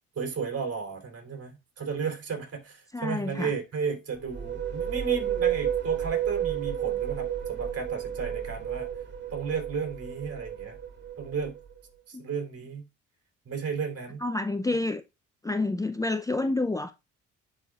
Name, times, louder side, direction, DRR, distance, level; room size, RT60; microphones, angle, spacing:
voice 1, 0.1-8.9 9.3-10.8 11.2-11.6 12.1-12.9 13.4-14.2, right 5 dB, 50° right, 3.2 m, -33 dB
voice 2, 2.9-3.5 12.1-12.2 14.2-15.0 15.4-16.9, left 2 dB, 10° left, 0.5 m, -28 dB
sound 1, 4.1-11.8, right 10 dB, 35° right, 2.6 m, -31 dB
10.0 x 4.4 x 2.4 m
cardioid pair, 90°, 30 cm